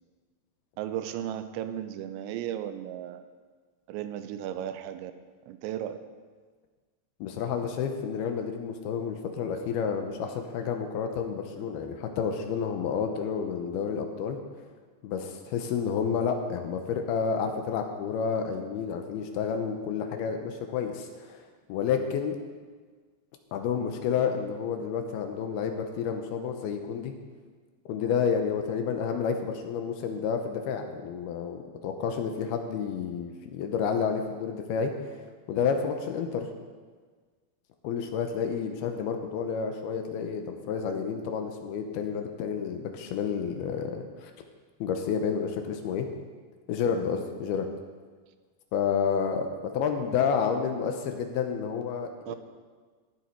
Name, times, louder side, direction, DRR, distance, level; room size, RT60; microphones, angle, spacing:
voice 1, 0.8-3.2 3.9-5.1 5.5-6.0 42.1-42.2 52.3-52.4, right 11 dB, 90° right, 10 dB, 3.0 m, -35 dB
voice 2, 7.2-14.4 15.0-22.4 23.5-27.1 27.9-35.2 35.5-36.5 37.8-44.3 44.8-46.1 46.7-47.7 48.7-49.5 49.7-52.4, left 6 dB, 75° left, 5 dB, 2.5 m, -30 dB
15.5 x 10.5 x 4.6 m, 1.5 s
omnidirectional pair, 5.3 m